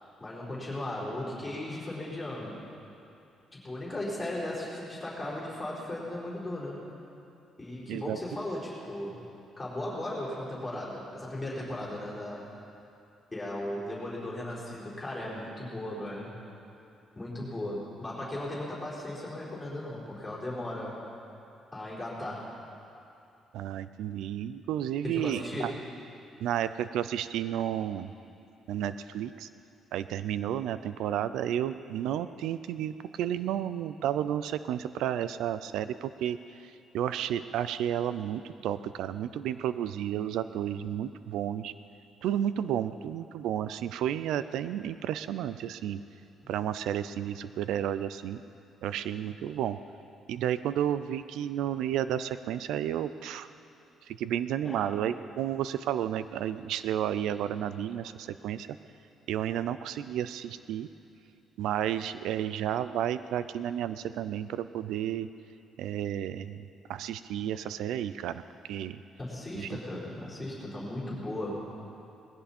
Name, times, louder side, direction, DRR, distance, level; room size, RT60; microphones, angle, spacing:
voice 1, 0.2-2.5 3.5-6.8 7.6-9.2 9.6-12.5 13.3-16.3 17.1-21.0 21.7-22.5 25.0-25.8 54.6-54.9 69.2-71.7, left 1 dB, 10° left, -7 dB, 4.4 m, -37 dB
voice 2, 23.5-25.7 26.4-28.1 28.7-29.5 29.9-36.4 36.9-41.7 42.2-46.0 46.5-48.4 48.8-49.8 50.3-53.5 54.1-58.7 59.3-60.9 61.6-65.3 65.8-66.6 66.9-68.4 68.7-69.0 69.5-69.7, right 10 dB, 90° right, 13 dB, 0.4 m, -32 dB
20.0 x 16.0 x 4.3 m, 2.6 s
cardioid pair, 170°, 0 cm